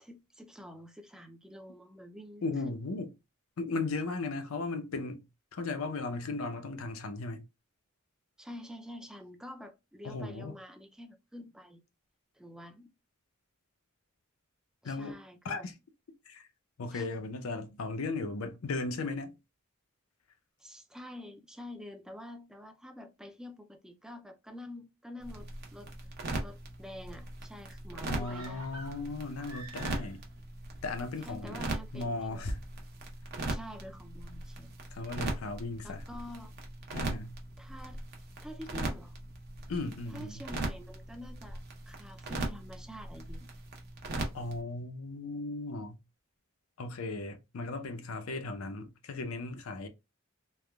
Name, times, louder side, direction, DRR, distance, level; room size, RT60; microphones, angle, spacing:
voice 1, 0.0-2.8 8.4-11.8 12.4-12.9 14.8-15.7 16.9-17.1 20.6-25.9 26.4-28.7 31.3-32.4 33.5-34.8 35.8-36.5 37.6-38.0 38.4-39.1 40.1-43.5, left 1 dB, 5° right, 0.3 m, -47 dB
voice 2, 2.4-3.1 3.6-5.2 5.5-7.4 10.0-10.5 14.8-15.7 16.3-16.5 16.8-19.4 28.1-30.2 30.8-31.6 31.9-32.6 34.9-36.0 36.9-37.4 39.7-40.5 44.3-46.0 46.8-49.9, left 3 dB, 85° left, 0.6 m, -36 dB
sound 1, 25.2-44.6, right 2 dB, 50° right, 0.7 m, -40 dB
sound 2, 28.2-30.4 30.7-30.8, right 2 dB, 85° right, 0.7 m, -49 dB
3.3 x 2.1 x 2.2 m
head